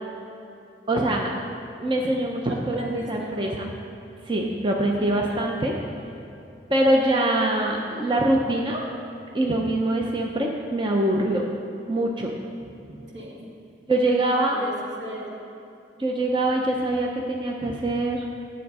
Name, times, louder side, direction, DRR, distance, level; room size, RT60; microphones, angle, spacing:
voice 1, 0.9-1.3 1.8-3.7 4.3-5.7 6.7-8.8 9.3-11.4 11.9-12.3 13.9-14.6 16.0-18.2, right 1 dB, 25° right, 0 dB, 0.6 m, -23 dB
voice 2, 2.5-3.6 5.0-5.6 13.1-13.5 14.5-15.3, right 1 dB, 80° right, -3 dB, 1.8 m, -38 dB
9.7 x 7.1 x 4.8 m, 2.7 s
head